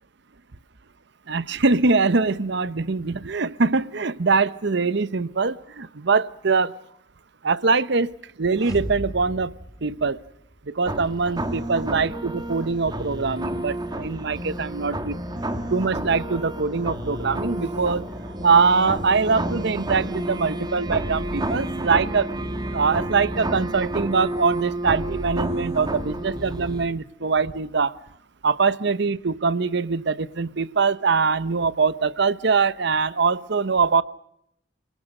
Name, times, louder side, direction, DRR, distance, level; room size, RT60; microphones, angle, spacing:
voice 1, 1.3-6.7 7.4-9.5 9.8-10.2 10.7-15.2 15.7-22.3 22.7-27.9 28.4-34.0, right 4 dB, 65° right, 17 dB, 0.9 m, -23 dB
sound 1, 8.5-10.7, equal, 20° left, 3.6 m, -36 dB
sound 2, 10.9-26.9, right 1 dB, 25° right, 2.1 m, -30 dB
30.0 x 19.5 x 6.5 m, 0.74 s
head